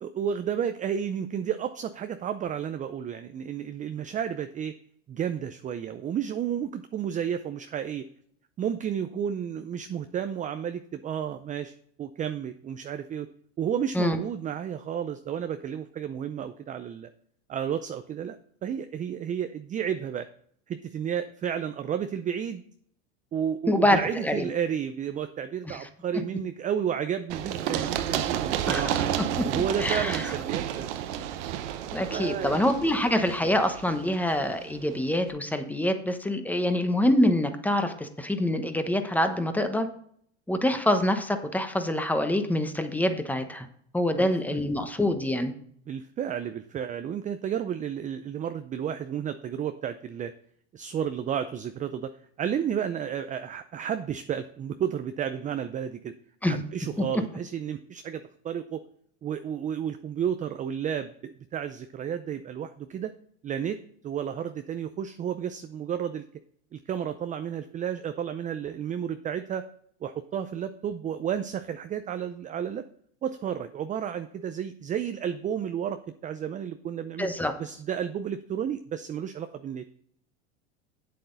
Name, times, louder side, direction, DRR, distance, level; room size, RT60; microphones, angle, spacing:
voice 1, 0.0-4.7 5.1-8.1 8.6-13.3 13.6-17.1 17.5-20.3 20.7-22.6 23.3-29.1 29.5-30.8 32.1-32.6 44.2-44.6 45.9-50.3 50.7-52.1 52.4-56.1 56.4-58.8 59.2-63.1 63.4-66.2 66.7-69.6 70.0-72.8 73.2-77.3 77.6-79.9, right 8 dB, 20° right, 9 dB, 0.4 m, -32 dB
voice 2, 23.7-24.5 25.7-25.8 28.7-29.0 29.4-30.3 31.9-39.9 40.5-43.7 43.9-45.5 56.4-56.6 57.0-57.1 77.2-77.5, left 1 dB, 5° left, 8 dB, 1.0 m, -26 dB
Run, 27.3-34.9, right 10 dB, 75° right, 1.0 m, -31 dB
8.5 x 7.8 x 3.9 m, 0.63 s
supercardioid pair, 110°, 36 cm